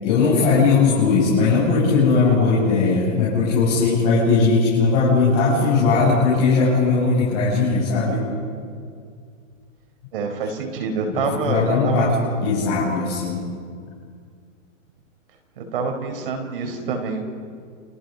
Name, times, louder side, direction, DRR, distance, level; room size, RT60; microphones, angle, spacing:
voice 1, 0.0-8.2 11.1-12.1 12.4-13.4, left 4 dB, 30° left, -8 dB, 6.9 m, -18 dB
voice 2, 10.1-12.1 15.6-17.4, right 4 dB, 45° right, 4 dB, 4.4 m, -26 dB
30.0 x 27.5 x 5.3 m, 2.1 s
hypercardioid pair, 165°, 39 cm